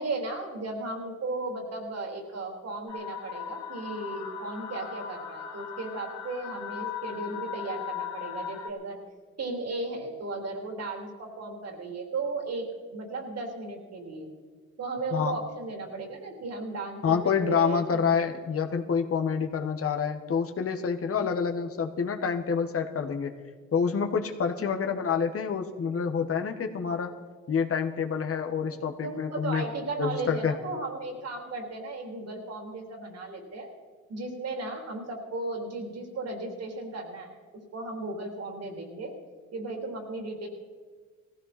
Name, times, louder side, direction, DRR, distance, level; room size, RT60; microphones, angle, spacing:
voice 1, 0.0-9.0 9.4-14.3 14.8-18.0 21.2-21.5 24.6-24.7 28.6-33.7 34.1-37.4 37.7-39.1 39.5-40.5, right 2 dB, 55° right, 2 dB, 3.4 m, -35 dB
sound 1, 2.9-8.7, left 8 dB, 65° left, 1.9 m, -38 dB
voice 2, 17.0-23.3 23.7-27.1 27.5-29.6 30.0-30.5, left 6 dB, 50° left, 5 dB, 1.5 m, -27 dB
18.0 x 15.5 x 4.3 m, 1.5 s
cardioid pair, 90°, 30 cm